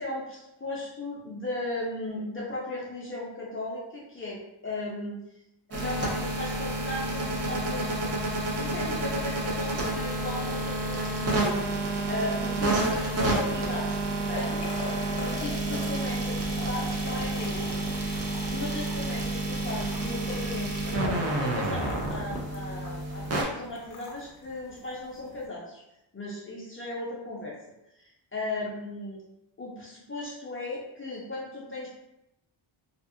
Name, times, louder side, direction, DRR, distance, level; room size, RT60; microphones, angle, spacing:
voice 1, 0.0-5.2 5.7-8.2 8.6-14.7 15.1-17.9 18.5-25.8 26.1-27.6 28.0-29.2 29.6-31.9, left 2 dB, 30° left, -5 dB, 0.4 m, -36 dB
sound 1, 5.7-23.4, right 2 dB, 35° right, 0.4 m, -29 dB
sound 2, 12.8-25.5, left 3 dB, 55° left, 0.7 m, -44 dB
2.7 x 2.5 x 2.5 m, 0.85 s
wide cardioid pair, 165°, 49 cm